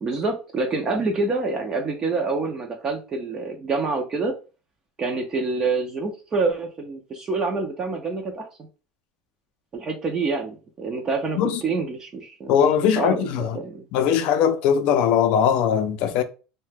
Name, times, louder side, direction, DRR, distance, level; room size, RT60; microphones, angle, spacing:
voice 1, 0.0-4.3 5.0-8.5 9.7-12.6 12.8-13.8, right 3 dB, 20° right, 0.4 m, -27 dB
voice 2, 12.5-13.6 13.9-16.2, left 8 dB, 50° left, 0.4 m, -20 dB
2.8 x 2.1 x 3.3 m
cardioid pair, 160°, 3 cm